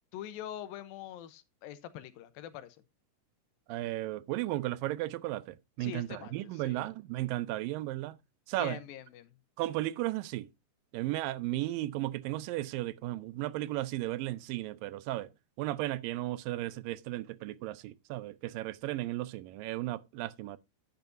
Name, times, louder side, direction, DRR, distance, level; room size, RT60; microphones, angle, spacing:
voice 1, 0.1-2.8 5.8-6.9 8.6-9.4, left 11 dB, 90° left, 2.7 m, -44 dB
voice 2, 3.7-8.2 8.5-8.8 9.6-10.5 10.9-15.3 15.6-20.6, right 16 dB, 80° right, 2.3 m, -35 dB
11.0 x 9.1 x 2.6 m
omnidirectional pair, 4.0 m